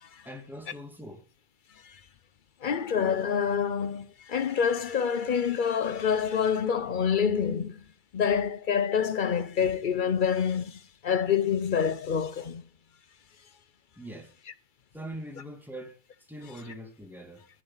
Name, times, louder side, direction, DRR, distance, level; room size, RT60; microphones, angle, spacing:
voice 1, 0.2-1.2 14.0-14.3 14.9-17.5, equal, ahead, 1.9 m, -42 dB
voice 2, 2.6-7.8 8.1-12.6, left 7 dB, 55° left, 0.5 m, -27 dB
9.4 x 6.5 x 8.8 m
omnidirectional pair, 1.6 m